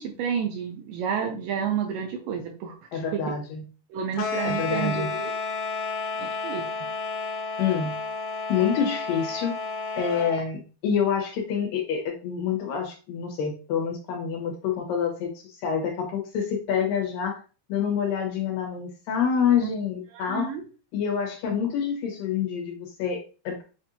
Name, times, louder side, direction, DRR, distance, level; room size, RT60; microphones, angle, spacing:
voice 1, 0.0-3.4 3.9-5.3 6.2-6.7 19.6-19.7 20.1-20.6, right 7 dB, 80° right, 3 dB, 2.0 m, -30 dB
voice 2, 2.9-3.6 4.4-5.1 7.6-7.9 8.5-9.6 10.0-15.3 15.6-17.4 17.7-20.5 20.9-23.6, left 7 dB, 70° left, 0 dB, 2.7 m, -27 dB
sound 1, 4.1-10.4, left 4 dB, 90° left, 2.5 m, -31 dB
7.6 x 2.6 x 2.7 m, 0.34 s
omnidirectional pair, 4.4 m